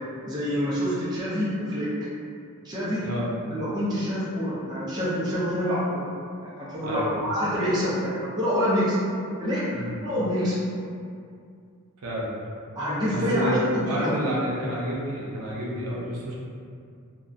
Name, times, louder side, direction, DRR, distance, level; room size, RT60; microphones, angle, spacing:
voice 1, 0.2-1.9 2.6-3.1 3.5-6.1 6.4-9.0 9.4-9.7 10.0-10.6 12.8-14.2, equal, 20° right, -9 dB, 0.5 m, -26 dB
voice 2, 13.1-16.3, equal, 90° right, -5 dB, 0.6 m, -29 dB
2.6 x 2.2 x 2.4 m, 2.4 s
head